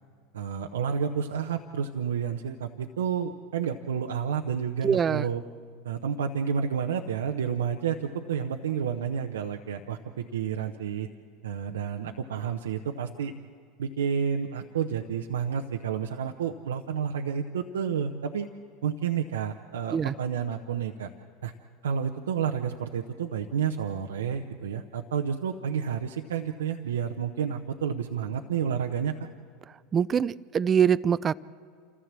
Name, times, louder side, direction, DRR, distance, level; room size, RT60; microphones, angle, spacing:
voice 1, 0.3-5.4 5.8-11.1 11.4-13.3 13.8-18.5 18.8-21.1 21.4-21.5 21.8-29.2, right 7 dB, 85° right, 4 dB, 0.8 m, -30 dB
voice 2, 4.8-5.3 19.9-20.1 29.9-31.3, right 7 dB, 30° right, 17 dB, 0.4 m, -23 dB
27.0 x 15.0 x 7.5 m, 2.2 s
hypercardioid pair, 90°, 0 cm